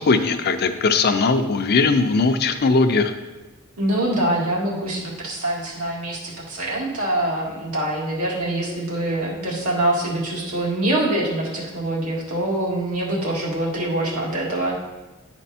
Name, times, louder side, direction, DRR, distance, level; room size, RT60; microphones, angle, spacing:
voice 1, 0.1-3.1, left 4 dB, 45° left, 8 dB, 0.5 m, -19 dB
voice 2, 3.8-14.8, right 1 dB, 90° right, -4 dB, 2.1 m, -24 dB
9.9 x 4.4 x 4.2 m, 1.2 s
head